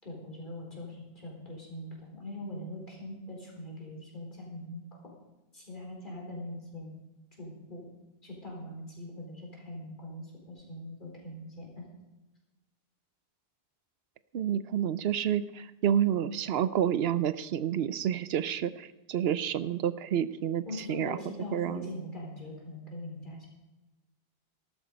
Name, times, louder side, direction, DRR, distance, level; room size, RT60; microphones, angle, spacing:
voice 1, 0.0-4.8 5.5-7.0 7.4-7.9 8.2-11.9 20.7-23.5, left 1 dB, 50° left, -2 dB, 4.4 m, -42 dB
voice 2, 14.3-20.6 20.9-21.9, right 9 dB, 75° right, 15 dB, 0.9 m, -29 dB
14.0 x 12.5 x 5.2 m, 1.1 s
omnidirectional pair, 1.1 m